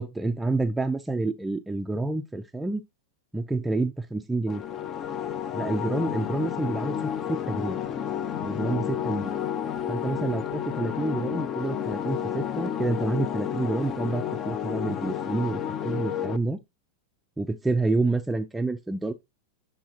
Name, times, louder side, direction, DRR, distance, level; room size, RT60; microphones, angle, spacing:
voice 1, 0.0-2.8 3.3-4.6 5.5-7.0 7.3-7.8 8.4-9.3 9.9-16.6 17.4-19.1, right 2 dB, 5° right, 0.5 m, -28 dB
sound 1, 4.5-16.4, left 9 dB, 35° left, 0.7 m, -31 dB
9.2 x 4.1 x 2.8 m
hypercardioid pair, 120°, 0 cm